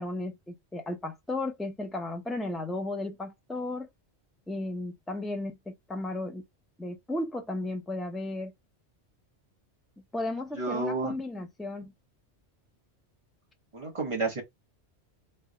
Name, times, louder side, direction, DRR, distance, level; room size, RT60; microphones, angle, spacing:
voice 1, 0.0-3.9 4.5-6.4 6.8-8.5 10.1-11.9, left 2 dB, ahead, 0.3 m, -34 dB
voice 2, 10.5-11.1 13.7-14.4, right 3 dB, 30° right, 1.1 m, -30 dB
3.3 x 2.2 x 3.8 m
omnidirectional pair, 1.1 m